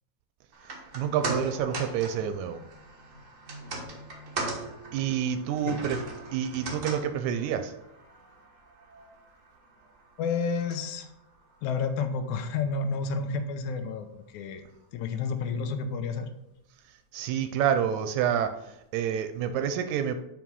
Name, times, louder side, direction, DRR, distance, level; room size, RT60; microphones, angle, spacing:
sound 1, 0.5-12.9 13.2-13.3, right 3 dB, 65° right, 0.7 m, -40 dB
voice 1, 0.7-2.6 4.9-6.0 6.3-7.7 16.9-20.2, right 9 dB, 80° right, 9 dB, 1.8 m, -28 dB
voice 2, 10.2-11.1 11.6-14.7 14.9-16.3, left 5 dB, 85° left, 8 dB, 2.0 m, -30 dB
5.9 x 4.7 x 5.4 m, 0.86 s
omnidirectional pair, 3.4 m